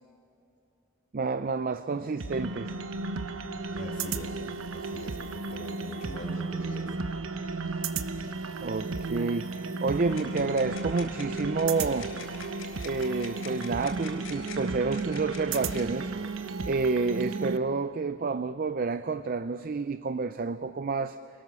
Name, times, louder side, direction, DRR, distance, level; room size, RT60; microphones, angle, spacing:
voice 1, 1.1-2.8 8.6-12.1 12.8-16.1 16.7-21.2, right 4 dB, 45° right, 12 dB, 0.5 m, -29 dB
sound 1, 2.2-17.6, right 3 dB, 80° right, 1.0 m, -34 dB
voice 2, 3.7-4.4 4.7-6.9, left 1 dB, 40° left, 1 dB, 3.3 m, -43 dB
sound 2, 10.1-15.9, left 6 dB, 80° left, 4.2 m, -47 dB
27.0 x 19.5 x 6.9 m, 2.7 s
head